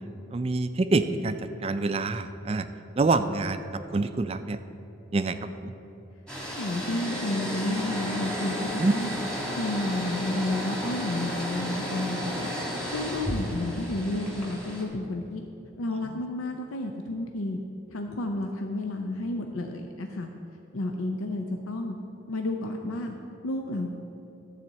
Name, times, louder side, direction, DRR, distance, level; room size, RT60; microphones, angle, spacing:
voice 1, 0.3-2.7 3.0-4.6 5.1-5.7 8.8-8.9 16.1-16.2, right 3 dB, 30° right, 10 dB, 0.3 m, -26 dB
sound 1, 6.3-14.8, equal, 5° left, 1.4 m, -33 dB
voice 2, 6.5-9.1 9.5-12.5 12.9-15.4 15.8-17.6 17.9-20.3 20.7-22.0 22.3-23.1 23.4-23.9, left 2 dB, 90° left, 3 dB, 0.6 m, -31 dB
12.5 x 4.2 x 7.3 m, 2.9 s
head